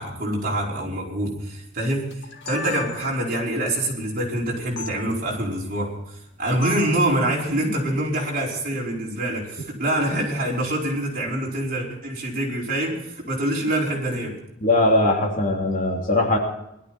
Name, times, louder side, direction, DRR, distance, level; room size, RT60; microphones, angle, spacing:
voice 1, 0.0-14.4, right 1 dB, 45° right, -3 dB, 5.0 m, -25 dB
sound 1, 2.1-3.4 4.8-4.9 6.6-7.0, left 4 dB, 65° left, 1.9 m, -34 dB
voice 2, 14.6-16.4, left 2 dB, 40° left, 1 dB, 3.0 m, -20 dB
20.5 x 13.0 x 4.3 m, 0.83 s
head